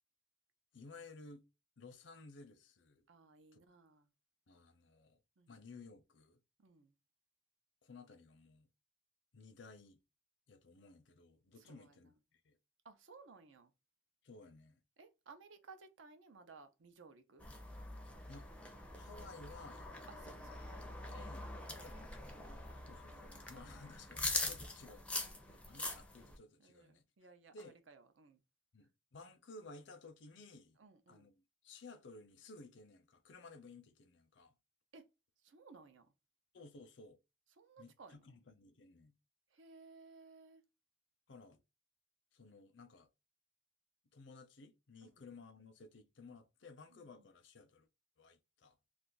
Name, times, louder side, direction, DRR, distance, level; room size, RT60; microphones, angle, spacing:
voice 1, 0.7-1.5 1.8-3.1 3.5-3.6 4.5-5.2 5.5-6.4 7.8-8.7 9.3-10.0 10.5-12.6 14.2-14.8 18.3-18.7 19.0-19.9 20.2-20.3 21.1-22.0 22.9-27.0 27.5-27.8 28.7-30.8 31.1-34.5 36.5-37.2 37.8-39.1 41.3-41.6 42.3-43.1 44.1-47.9 48.2-48.8, left 3 dB, 70° left, 0.6 m, -56 dB
voice 2, 3.1-4.1 5.4-5.6 6.6-6.9 11.6-11.9 12.8-13.7 15.0-17.5 20.1-21.7 22.0-22.1 22.8-23.0 26.6-28.4 30.8-31.3 34.9-35.0 35.4-36.1 37.6-38.2 39.5-40.6 45.0-45.2 46.9-47.3, right 4 dB, 80° right, 0.6 m, -59 dB
sound 1, 17.4-26.4, left 2 dB, 5° left, 0.4 m, -44 dB
2.4 x 2.4 x 3.8 m
head